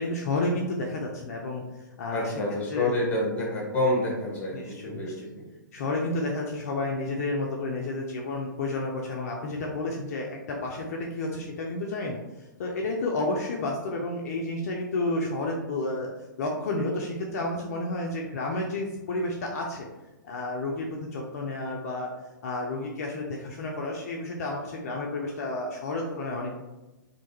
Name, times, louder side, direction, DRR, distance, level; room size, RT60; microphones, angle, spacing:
voice 1, 0.0-1.6 2.0-2.3 2.7-2.9 4.5-5.3 5.7-16.1 16.4-19.9 20.2-22.1 22.4-26.5, left 2 dB, 50° left, 0 dB, 0.4 m, -31 dB
voice 2, 2.1-5.5, left 1 dB, 15° left, -2 dB, 0.8 m, -28 dB
2.5 x 2.2 x 2.8 m, 1.0 s
figure-of-eight pair, 115°, 11 cm